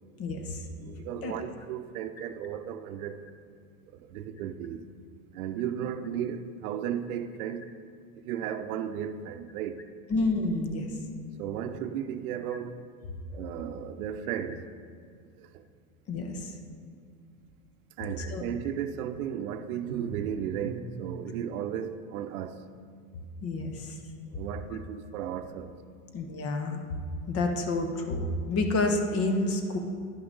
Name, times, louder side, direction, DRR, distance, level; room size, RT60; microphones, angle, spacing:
voice 1, 0.2-0.6 1.2-1.3 10.1-10.9 16.1-16.5 18.2-18.4 23.4-24.0 26.1-26.8 27.3-29.8, left 2 dB, 30° left, 0.9 m, -29 dB
voice 2, 0.8-3.3 3.9-4.9 5.3-7.6 8.1-9.8 11.4-12.8 13.3-14.7 15.4-15.6 18.0-22.7 24.3-25.8, right 9 dB, 70° right, 0.7 m, -35 dB
10.5 x 5.8 x 3.9 m
supercardioid pair, 120°, 45 cm